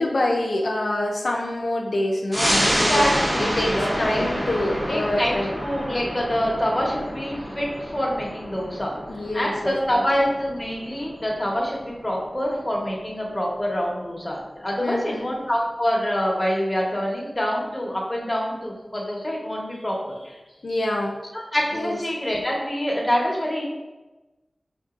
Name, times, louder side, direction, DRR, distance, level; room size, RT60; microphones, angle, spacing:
voice 1, 0.0-3.0 3.4-5.5 9.1-10.0 14.8-15.3 20.6-21.1 21.7-22.0, left 1 dB, 75° left, -1 dB, 0.4 m, -26 dB
sound 1, 2.3-13.3 13.7-13.8, equal, 45° right, 1.1 m, -28 dB
voice 2, 2.6-4.5 4.9-8.9 9.3-20.1 21.5-23.6, equal, 20° left, -3 dB, 1.0 m, -26 dB
5.7 x 2.5 x 2.4 m, 1.1 s
wide cardioid pair, 55°, 0 cm